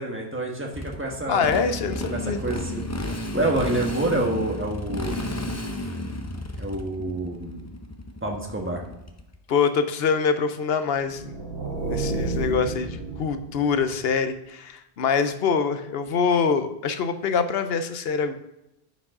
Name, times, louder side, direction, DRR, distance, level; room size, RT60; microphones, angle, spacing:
voice 1, 0.0-1.5 2.1-2.8 3.3-5.1 6.6-7.6 8.2-8.8, right 2 dB, 10° right, 0 dB, 1.3 m, -27 dB
Motorcycle, 0.7-9.4, left 1 dB, 20° left, 0.5 m, -32 dB
voice 2, 1.3-2.4 9.5-11.4 11.9-18.3, left 5 dB, 70° left, 10 dB, 0.9 m, -24 dB
sound 1, 11.0-14.0, right 3 dB, 75° right, 1.9 m, -31 dB
9.7 x 5.3 x 3.7 m, 0.88 s
omnidirectional pair, 1.1 m